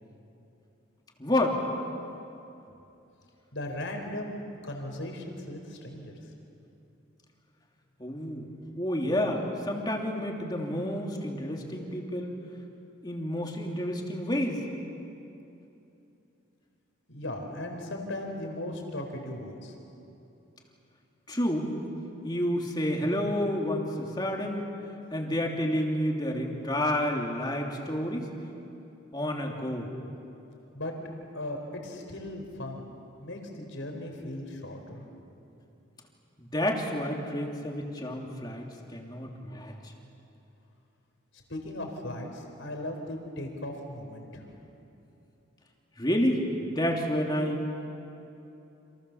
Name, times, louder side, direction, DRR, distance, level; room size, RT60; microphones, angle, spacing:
voice 1, 1.2-1.6 8.0-8.5 8.7-12.4 13.0-14.6 21.3-21.7 22.2-24.7 25.1-28.3 29.1-29.9 36.4-39.7 46.0-47.6, left 1 dB, 20° left, 0 dB, 3.0 m, -29 dB
voice 2, 3.5-6.2 17.1-19.7 30.7-30.9 31.3-32.9 33.2-35.0 41.5-44.5, left 1 dB, 70° left, 3 dB, 4.5 m, -37 dB
30.0 x 27.5 x 7.2 m, 2.9 s
head